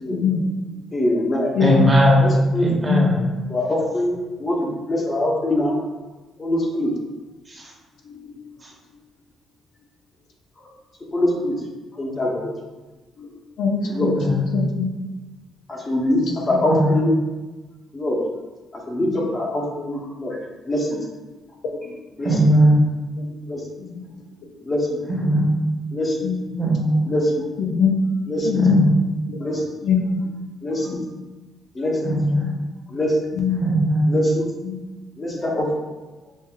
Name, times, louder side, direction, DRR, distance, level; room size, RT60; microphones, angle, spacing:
voice 1, 0.1-0.4 1.5-1.9 2.8-3.1 8.1-8.4 11.2-11.3 13.2-13.3 13.6-14.9 16.2-16.4 21.3-21.4 21.7-21.9 23.2-23.3 23.8-24.2 25.2-25.5 26.2-26.5 27.6-27.9 28.4-28.8 29.3-29.4 29.8-30.2 30.7-31.1 32.3-32.6 33.3-33.6 34.6-34.8 35.3-35.4, left 6 dB, 80° left, 1 dB, 0.5 m, -23 dB
voice 2, 0.9-1.5 2.2-2.7 3.5-5.8 6.4-6.9 11.1-11.5 12.0-12.5 13.9-14.1 15.7-16.2 16.5-17.1 17.9-18.2 18.9-20.4 20.6-20.9 22.2-22.4 23.5-23.6 24.7-24.9 25.9-26.2 27.0-27.4 28.3-28.5 29.4-29.6 30.6-30.9 31.8-32.0 32.9-33.1 34.1-34.4 35.2-35.7, left 1 dB, 35° left, -2 dB, 0.9 m, -23 dB
voice 3, 1.6-2.3 2.6-3.1 14.2-14.4 16.5-16.9 22.2-22.8 25.1-25.5 26.6-27.0 28.6-29.0 32.0-32.4 33.6-34.1, equal, 25° right, -3 dB, 1.0 m, -18 dB
5.3 x 2.5 x 2.4 m, 1.2 s
cardioid pair, 90°, 0 cm